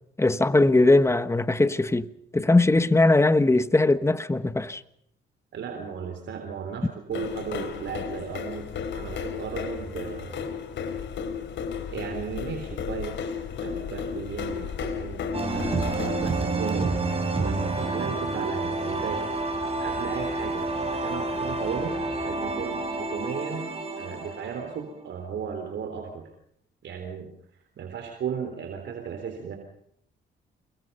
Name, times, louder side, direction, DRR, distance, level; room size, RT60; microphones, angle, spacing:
voice 1, 0.2-2.1 2.3-4.8, left 2 dB, 15° left, 1.3 m, -20 dB
voice 2, 5.5-8.7 8.9-10.5 11.9-13.4 13.6-17.0 17.4-19.2 19.8-26.3 26.8-27.3 27.8-29.6, right 7 dB, 65° right, 3.6 m, -35 dB
sound 1, 7.1-16.3, left 6 dB, 70° left, 3.5 m, -34 dB
sound 2, 15.3-25.2, right 2 dB, 30° right, 7.7 m, -29 dB
28.0 x 22.5 x 5.5 m
cardioid pair, 90°, 20 cm